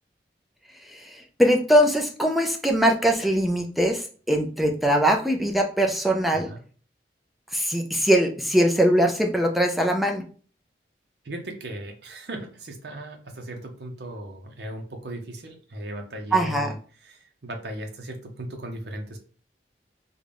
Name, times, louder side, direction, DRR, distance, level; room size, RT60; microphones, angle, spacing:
voice 1, 0.9-6.5 7.5-10.2 16.3-16.7, equal, ahead, 2 dB, 0.4 m, -21 dB
voice 2, 6.3-6.6 11.2-19.2, right 1 dB, 70° right, 3 dB, 0.7 m, -37 dB
3.7 x 2.2 x 3.3 m, 0.41 s
head